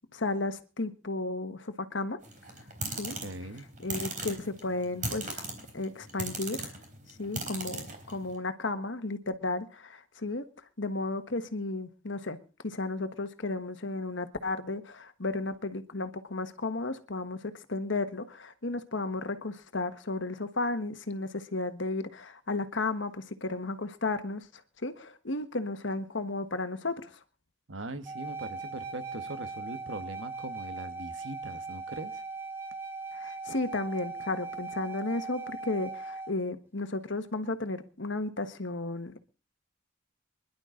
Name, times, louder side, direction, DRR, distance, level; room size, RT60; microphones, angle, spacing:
voice 1, 0.1-2.2 2.9-3.2 3.8-5.5 5.7-6.7 7.2-10.5 10.8-24.5 24.8-27.2 33.1-39.2, left 2 dB, 60° left, 1.4 m, -34 dB
sound 1, 2.2-8.3, right 3 dB, 40° right, 3.9 m, -38 dB
voice 2, 3.2-3.7 27.7-32.2, right 2 dB, 65° right, 1.4 m, -41 dB
sound 2, 28.0-36.3, right 4 dB, 10° right, 2.2 m, -39 dB
25.5 x 11.0 x 3.8 m
head